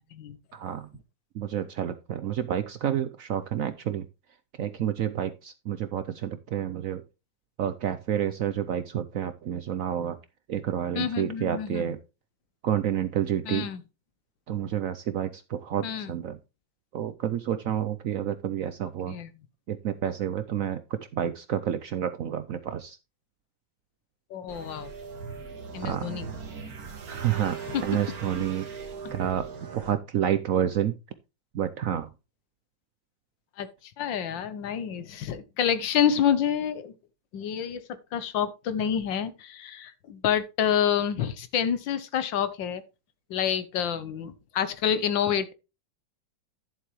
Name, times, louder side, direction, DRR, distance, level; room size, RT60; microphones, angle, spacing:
voice 1, 0.5-0.9 1.3-4.1 4.6-7.0 7.6-10.2 10.5-12.0 12.6-13.7 14.5-16.4 16.9-19.2 19.7-23.0 25.8-26.2 27.1-30.9 31.5-32.1, right 10 dB, 80° right, 0.7 m, -29 dB
voice 2, 10.9-11.8 13.5-13.8 15.8-16.1 19.1-19.3 24.3-24.9 25.7-26.3 27.7-27.8 33.6-33.7 34.0-36.9 37.3-37.8 38.1-42.8 43.3-45.5, left 8 dB, 70° left, 1.6 m, -28 dB
sound 1, 24.5-29.9, right 5 dB, 50° right, 2.0 m, -39 dB
10.5 x 7.4 x 3.0 m
omnidirectional pair, 2.1 m